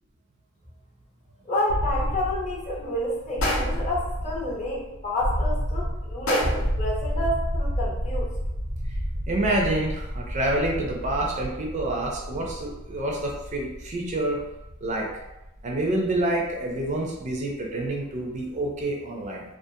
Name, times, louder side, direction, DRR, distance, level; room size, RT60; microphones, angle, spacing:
voice 1, 1.4-8.3, left 1 dB, 35° left, -4 dB, 0.7 m, -29 dB
sound 1, 1.7-17.5, equal, 90° right, 0.6 m, -31 dB
sound 2, 3.4-4.0 6.3-6.8, left 1 dB, 70° left, 0.6 m, -27 dB
voice 2, 9.3-14.4 14.8-15.1 15.6-19.4, right 1 dB, 35° right, -1 dB, 0.4 m, -27 dB
2.5 x 2.4 x 2.6 m, 0.97 s
head